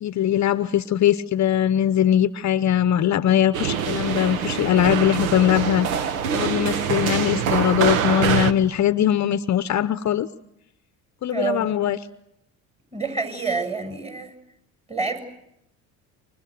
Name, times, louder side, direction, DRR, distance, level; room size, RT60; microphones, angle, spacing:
voice 1, 0.0-5.9 6.3-10.3 11.2-12.0, left 10 dB, 45° left, 13 dB, 0.9 m, -21 dB
sound 1, 3.5-8.5, right 7 dB, 85° right, 1.3 m, -24 dB
voice 2, 11.3-11.7 12.9-14.3 14.9-15.2, right 4 dB, 15° right, 7 dB, 7.5 m, -27 dB
28.5 x 24.5 x 6.7 m, 0.81 s
hypercardioid pair, 65°, 41 cm